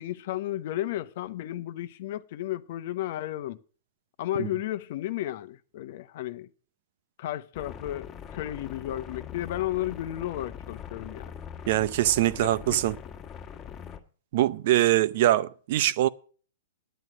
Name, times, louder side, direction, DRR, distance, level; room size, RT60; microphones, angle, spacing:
voice 1, 0.0-3.6 4.2-6.5 7.2-11.3 12.4-12.8, left 14 dB, 55° left, 0.9 m, -33 dB
sound 1, 7.5-14.0, left 8 dB, 25° left, 1.7 m, -42 dB
voice 2, 11.7-13.0 14.3-16.1, right 14 dB, 55° right, 0.7 m, -23 dB
10.0 x 9.2 x 6.1 m
hypercardioid pair, 130°, 0 cm